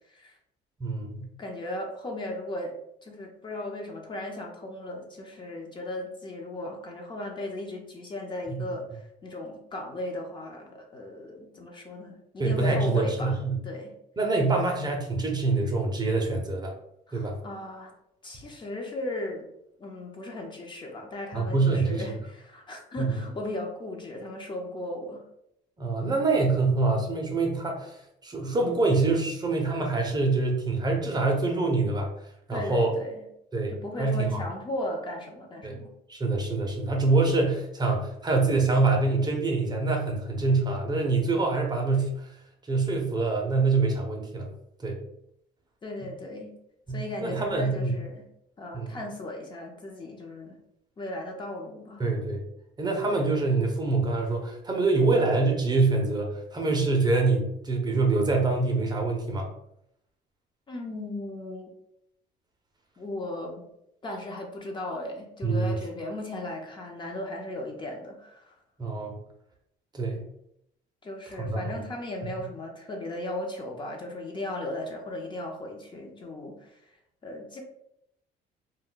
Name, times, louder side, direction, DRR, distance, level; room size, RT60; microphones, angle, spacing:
voice 1, 0.8-1.2 8.5-8.6 12.4-13.6 14.2-16.7 17.1-17.4 21.3-22.2 23.0-23.2 25.8-28.0 28.2-32.1 32.5-32.9 33.5-34.4 35.6-35.8 36.1-42.3 42.7-44.5 44.8-45.0 46.9-47.9 48.7-49.0 52.0-52.4 52.8-59.5 65.4-65.8 68.8-69.2 69.9-70.2 71.4-71.6, right 3 dB, 25° right, 1 dB, 0.6 m, -25 dB
voice 2, 1.4-2.8 3.0-8.8 9.2-13.4 13.6-13.9 17.1-17.9 18.2-19.5 19.8-25.2 32.5-33.2 33.7-35.9 45.8-46.5 46.9-48.3 48.6-50.6 51.0-52.0 60.7-61.7 63.0-63.7 64.0-68.5 71.0-76.8 77.2-77.6, left 1 dB, 30° left, 1 dB, 0.6 m, -36 dB
2.2 x 2.1 x 3.7 m, 0.76 s
cardioid pair, 110°, 17 cm